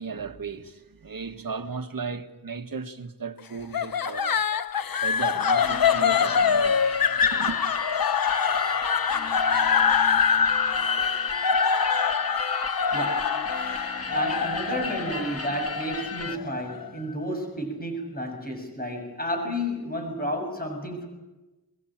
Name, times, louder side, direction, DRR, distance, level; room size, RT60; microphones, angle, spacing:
voice 1, 0.0-4.4 5.0-7.6, right 5 dB, 65° right, 1.8 m, -35 dB
sound 1, 3.7-16.9, left 6 dB, 65° left, 0.8 m, -24 dB
sound 2, 5.6-16.4, left 4 dB, 40° left, 1.6 m, -35 dB
voice 2, 12.9-13.3 14.0-21.1, equal, 25° left, 6.8 m, -31 dB
23.0 x 21.5 x 8.9 m
wide cardioid pair, 95°, 37 cm